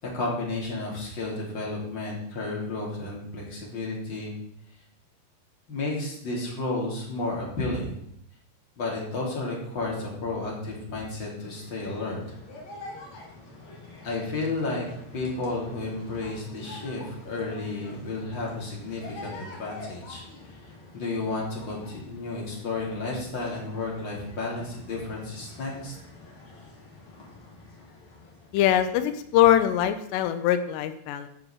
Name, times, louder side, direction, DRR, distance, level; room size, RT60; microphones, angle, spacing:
voice 1, 0.0-4.3 5.7-8.0 8.8-12.4 14.0-14.9 15.1-20.6 20.9-25.9, left 2 dB, 30° left, -3 dB, 3.3 m, -32 dB
sound 1, 11.3-29.8, left 2 dB, 45° left, 3.4 m, -46 dB
voice 2, 28.5-31.3, left 11 dB, 80° left, 8 dB, 2.7 m, -22 dB
10.5 x 6.6 x 7.3 m, 0.74 s
omnidirectional pair, 5.2 m